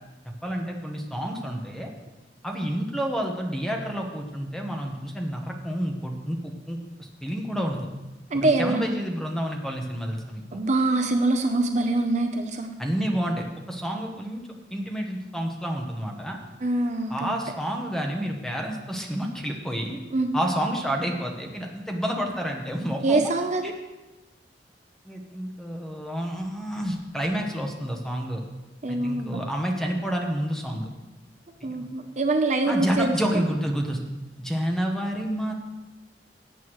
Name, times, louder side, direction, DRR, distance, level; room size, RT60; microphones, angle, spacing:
voice 1, 0.4-1.9 2.4-6.4 6.7-7.9 8.3-10.6 12.8-16.4 17.1-20.0 20.3-23.2 25.0-28.4 28.9-30.9 31.6-31.9 32.7-34.0 34.4-35.5, equal, 5° left, 1 dB, 1.2 m, -29 dB
voice 2, 8.3-9.0 10.5-12.7 16.6-17.3 20.1-20.4 23.0-23.7 28.8-29.4 31.6-33.2, right 2 dB, 40° right, 5 dB, 0.7 m, -24 dB
17.5 x 8.1 x 3.1 m, 1.1 s
head